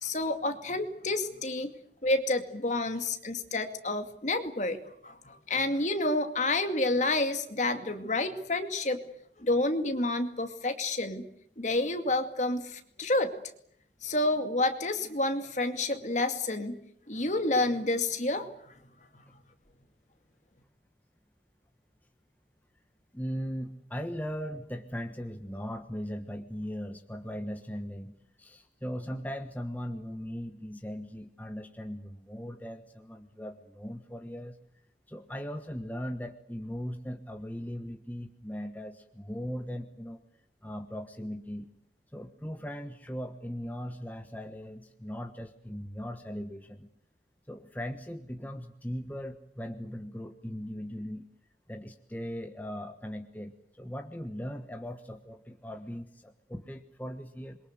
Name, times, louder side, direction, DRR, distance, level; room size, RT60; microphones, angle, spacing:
voice 1, 0.0-1.7 2.0-4.8 5.0-9.0 9.4-11.2 11.6-13.3 14.0-16.8 17.1-18.7, left 2 dB, 40° left, 7 dB, 2.4 m, -29 dB
voice 2, 23.1-34.6 35.1-40.2 40.6-41.7 42.1-46.9 47.5-51.2 51.7-57.6, equal, 10° left, 6 dB, 1.2 m, -39 dB
27.5 x 23.0 x 8.0 m, 0.69 s
head